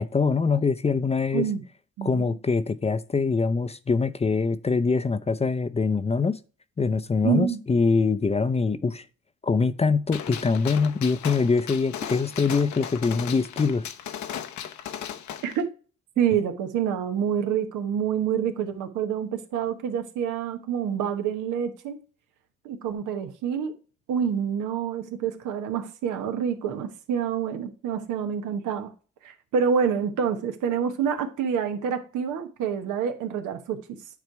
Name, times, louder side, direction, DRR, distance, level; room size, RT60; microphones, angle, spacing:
voice 1, 0.0-1.5 2.0-6.4 6.8-9.0 9.4-13.9, left 4 dB, 20° left, 0.5 m, -24 dB
voice 2, 1.3-1.6 2.0-2.4 7.2-7.6 15.4-15.7 16.2-22.0 22.6-23.7 24.1-28.9 29.2-33.8, right 7 dB, 85° right, 1.1 m, -27 dB
Gunshot gunfire, 10.1-15.6, left 9 dB, 70° left, 0.8 m, -36 dB
9.3 x 3.3 x 4.5 m
cardioid pair, 90°, 30 cm